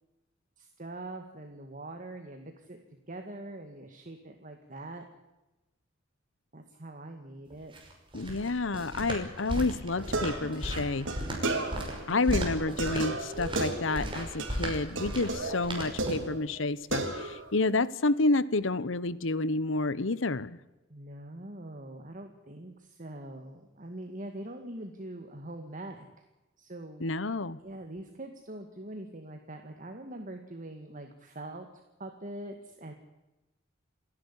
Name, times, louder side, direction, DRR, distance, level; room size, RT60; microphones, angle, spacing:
voice 1, 0.6-2.8 3.1-5.0 6.5-7.7 12.1-12.4 20.9-26.1 26.6-27.1 27.6-31.7 32.0-32.9, right 1 dB, 40° right, 5 dB, 2.0 m, -43 dB
sound 1, 7.5-16.4, equal, 25° right, 5.8 m, -36 dB
voice 2, 8.1-11.1 12.1-20.6 27.0-27.6, left 3 dB, 70° left, 18 dB, 1.0 m, -29 dB
sound 2, 9.9-12.0 12.3-14.1 14.4-14.7 15.0-16.6 16.9-17.5, right 2 dB, 65° right, 4.0 m, -34 dB
29.0 x 11.0 x 9.9 m, 1.0 s
head